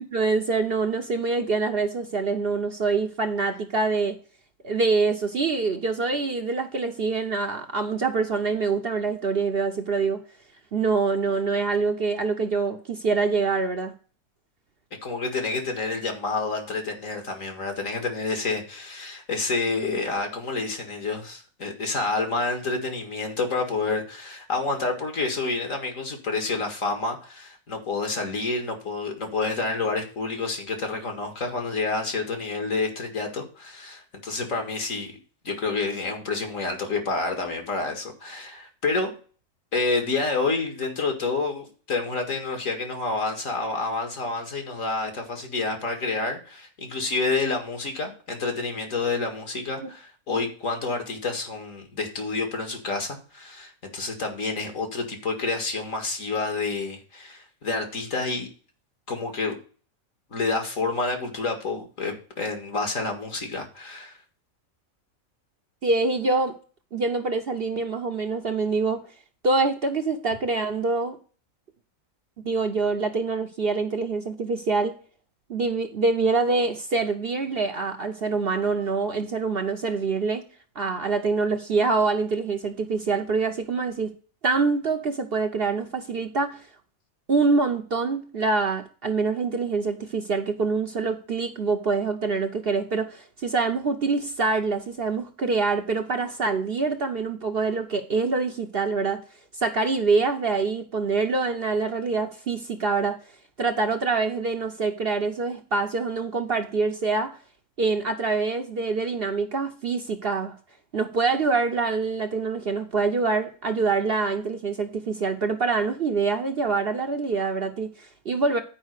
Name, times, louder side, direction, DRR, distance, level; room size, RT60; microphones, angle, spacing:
voice 1, 0.1-4.2 4.6-10.2 10.7-13.9 49.8-49.9 65.8-66.6 66.9-69.0 69.4-71.2 72.4-75.0 75.5-80.4 80.8-84.1 84.4-86.6 87.3-99.2 99.6-103.2 103.6-107.4 107.8-110.5 110.9-118.6, right 4 dB, 50° right, 0.9 m, -25 dB
voice 2, 15.0-35.1 35.4-39.1 39.7-58.5 59.1-59.6 60.3-64.2, left 3 dB, 60° left, 2.3 m, -28 dB
10.0 x 4.9 x 6.5 m
omnidirectional pair, 1.5 m